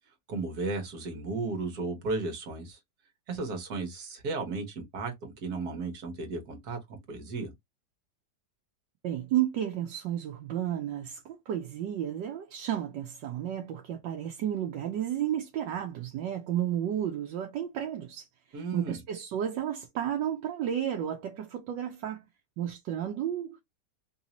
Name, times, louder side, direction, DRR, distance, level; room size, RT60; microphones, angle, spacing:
voice 1, 0.3-2.8 3.3-7.5 18.5-19.0, right 3 dB, 60° right, 1.7 m, -34 dB
voice 2, 9.0-18.3 18.7-22.2 22.6-23.6, right 10 dB, 80° right, 1.3 m, -32 dB
3.9 x 2.7 x 2.9 m
omnidirectional pair, 1.9 m